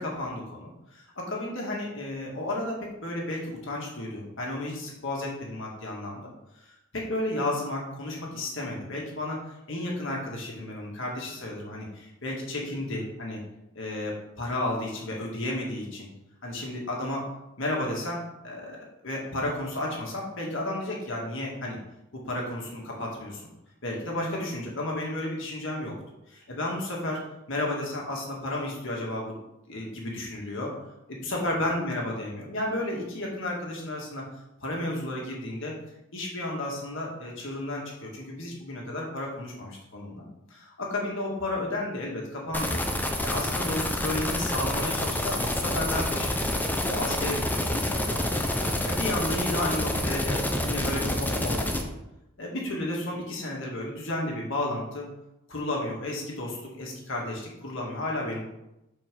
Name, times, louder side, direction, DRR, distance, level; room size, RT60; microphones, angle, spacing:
voice 1, 0.0-6.2 6.9-13.4 13.7-16.1 16.4-17.3 17.6-18.8 19.0-21.8 22.1-23.4 23.8-26.0 26.3-27.2 27.5-29.4 29.7-30.7 31.1-34.2 34.6-35.7 36.1-40.2 40.5-42.8 43.2-46.5 46.9-48.4 48.8-51.8 52.4-55.1 55.5-58.5, left 1 dB, 60° left, -2 dB, 1.8 m, -32 dB
sound 1, 42.5-51.8, left 1 dB, 10° left, 0.6 m, -28 dB
5.5 x 4.4 x 6.2 m, 0.90 s
head